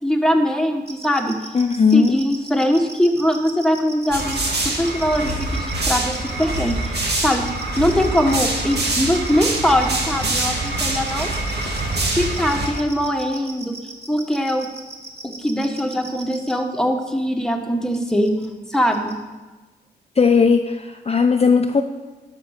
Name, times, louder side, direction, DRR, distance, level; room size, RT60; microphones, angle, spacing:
voice 1, 0.0-1.4 1.9-7.5 7.8-11.3 12.0-13.8 14.1-14.7 15.4-18.4 18.7-19.2, equal, 5° left, 3 dB, 1.5 m, -21 dB
sound 1, 0.9-16.5 17.9-18.5 18.7-19.1, right 2 dB, 35° right, 2.0 m, -38 dB
voice 2, 1.5-2.2 20.2-21.8, left 5 dB, 35° left, 6 dB, 0.6 m, -17 dB
sound 2, 4.1-12.7, right 2 dB, 65° right, 2.5 m, -24 dB
11.5 x 5.4 x 6.6 m, 1.2 s
cardioid pair, 50°, 18 cm